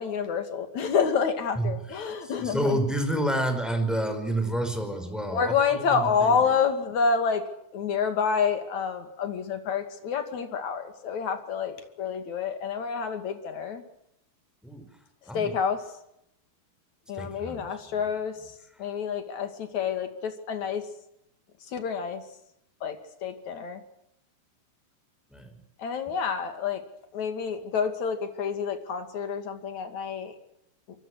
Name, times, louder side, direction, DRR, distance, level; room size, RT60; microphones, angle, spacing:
voice 1, 0.0-2.8 5.3-7.4 7.7-13.8 15.3-15.8 17.1-18.4 18.8-20.8 21.7-22.2 22.8-23.0 23.2-23.8 25.8-26.8 27.1-30.3, left 6 dB, 50° left, 8 dB, 3.3 m, -28 dB
voice 2, 1.5-6.5 14.6-14.9 15.3-15.5 17.1-18.1 25.3-25.5, right 1 dB, ahead, 7 dB, 4.7 m, -30 dB
26.5 x 23.5 x 6.3 m, 0.80 s
omnidirectional pair, 4.8 m